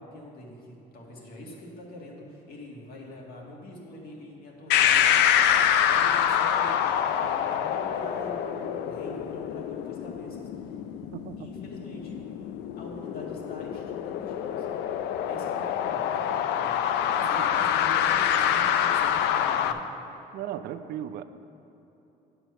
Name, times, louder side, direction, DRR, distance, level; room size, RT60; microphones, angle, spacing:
voice 1, 0.0-10.7 11.4-12.2 12.8-14.7 15.2-16.8 17.1-19.8, left 1 dB, 65° left, -2 dB, 1.7 m, -44 dB
sound 1, 4.7-19.7, left 9 dB, 85° left, 0.4 m, -26 dB
voice 2, 20.3-21.2, right 11 dB, 70° right, 12 dB, 0.4 m, -36 dB
9.0 x 4.4 x 6.7 m, 3.0 s
cardioid pair, 110°, 17 cm